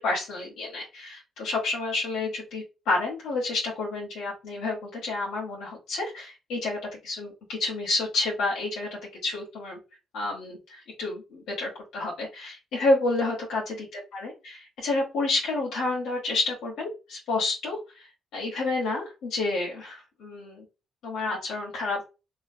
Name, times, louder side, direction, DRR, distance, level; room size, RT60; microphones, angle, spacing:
voice 1, 0.0-9.8 10.1-20.6 21.0-22.0, left 2 dB, 85° left, -4 dB, 1.2 m, -30 dB
3.0 x 2.5 x 2.6 m, 0.29 s
cardioid pair, 90°, 0 cm